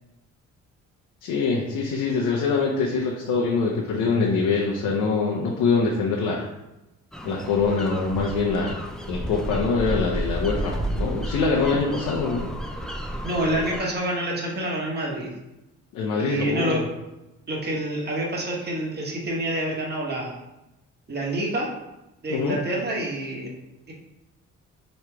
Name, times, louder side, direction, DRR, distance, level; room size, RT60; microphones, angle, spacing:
voice 1, 1.2-6.5 7.2-8.7 9.1-12.5 15.9-16.8 22.3-22.6, left 4 dB, 90° left, -2 dB, 0.7 m, -24 dB
sound 1, 7.1-13.8, right 1 dB, ahead, 0.4 m, -31 dB
voice 2, 13.2-15.3 16.2-16.8 17.5-20.3 21.1-21.7 22.2-23.5 23.9-24.0, right 1 dB, 35° right, -3 dB, 1.3 m, -27 dB
3.1 x 2.9 x 4.6 m, 0.96 s
cardioid pair, 90°, 30 cm